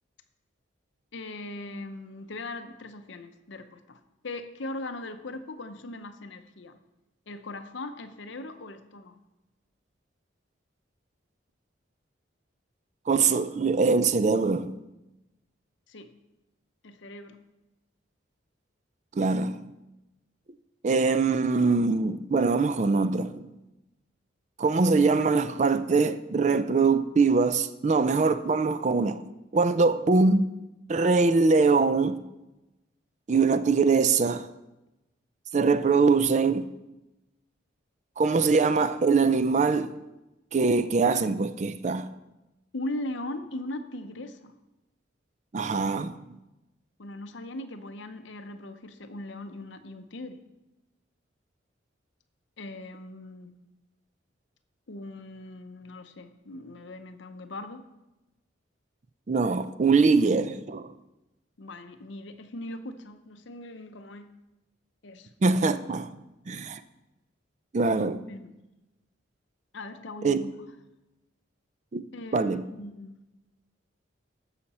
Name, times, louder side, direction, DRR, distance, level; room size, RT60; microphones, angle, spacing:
voice 1, 1.1-6.8 7.3-9.2 15.9-16.1 16.8-17.4 42.7-44.6 47.0-50.4 52.6-53.5 54.9-57.9 61.6-64.3 65.0-65.3 68.3-68.5 69.7-70.5 72.1-73.2, left 2 dB, 70° left, 0.7 m, -39 dB
voice 2, 13.1-14.7 19.2-19.6 20.8-23.5 24.6-29.2 29.5-30.5 30.9-32.2 33.3-34.5 35.5-36.7 38.2-39.9 40.5-42.1 45.5-46.2 59.3-60.9 65.4-66.1 66.5-66.8 67.7-68.2 70.2-70.4 71.9-72.0 72.3-72.6, right 4 dB, 35° right, 0.4 m, -23 dB
14.0 x 5.8 x 4.2 m
head